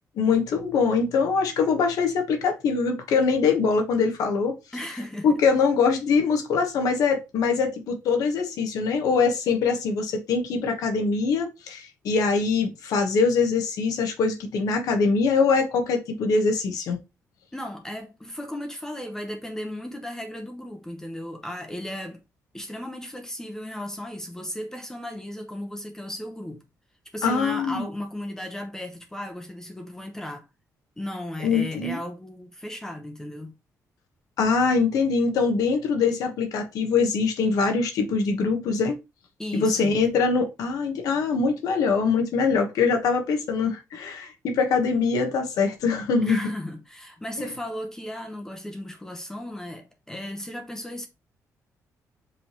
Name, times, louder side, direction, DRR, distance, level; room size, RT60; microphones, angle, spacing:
voice 1, 0.2-4.5 5.2-17.0 27.2-27.8 31.4-32.0 34.4-39.0 39.5-46.4, left 5 dB, 85° left, 1.1 m, -23 dB
voice 2, 4.7-5.4 17.5-22.2 22.5-26.6 27.1-30.5 31.0-33.5 39.4-39.9 46.2-51.1, left 1 dB, 10° left, 0.8 m, -35 dB
5.3 x 3.2 x 2.9 m
cardioid pair, 145°, 6 cm